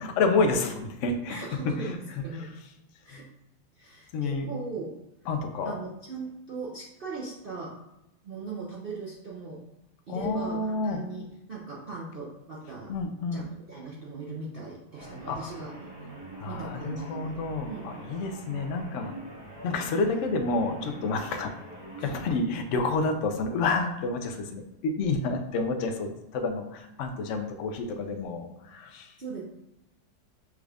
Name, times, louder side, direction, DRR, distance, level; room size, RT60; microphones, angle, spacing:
voice 1, 0.0-2.0 3.1-3.2 4.1-4.5 5.3-5.8 10.1-11.0 12.9-13.5 15.3-15.5 16.4-19.1 19.6-21.5 22.0-29.1, left 3 dB, 65° left, 5 dB, 0.7 m, -29 dB
voice 2, 1.3-2.0 2.2-2.5 3.0-3.3 3.7-4.9 5.6-7.8 8.2-9.6 10.1-12.9 13.3-13.4 13.7-15.7 16.5-17.4 17.7-18.0 22.0-22.1 29.2-29.4, right 3 dB, 65° right, -5 dB, 0.5 m, -39 dB
sound 1, 14.9-22.3, right 1 dB, 85° right, 2.6 m, -44 dB
6.2 x 2.4 x 3.4 m, 0.87 s
omnidirectional pair, 1.8 m